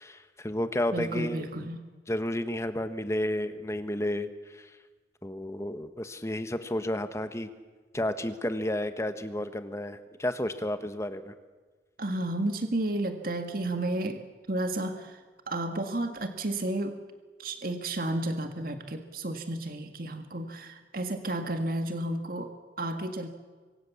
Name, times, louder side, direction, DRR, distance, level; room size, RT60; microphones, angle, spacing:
voice 1, 0.0-1.7 2.1-4.8 5.2-7.5 7.9-11.3, left 1 dB, 15° left, 10 dB, 1.3 m, -32 dB
voice 2, 0.9-1.8 12.0-17.0 17.4-23.3, right 1 dB, 55° right, 6 dB, 1.9 m, -32 dB
25.5 x 24.0 x 7.2 m, 1.4 s
head